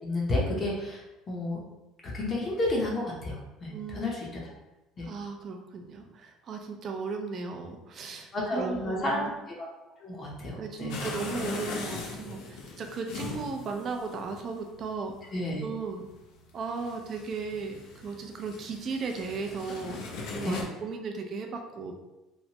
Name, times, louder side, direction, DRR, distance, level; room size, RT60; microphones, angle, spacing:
voice 1, 0.0-1.6 2.1-4.4 5.0-5.1 8.3-9.7 10.0-11.0 15.3-15.6 20.4-20.5, left 1 dB, 30° left, -3 dB, 0.7 m, -31 dB
voice 2, 3.7-4.1 5.0-9.4 10.6-15.3 15.6-16.1 16.5-20.0 20.3-21.9, right 4 dB, 40° right, 4 dB, 0.4 m, -36 dB
sound 1, 10.9-20.6, left 3 dB, 80° left, 0.5 m, -39 dB
3.0 x 2.1 x 2.8 m, 1.0 s
cardioid pair, 125°, 0 cm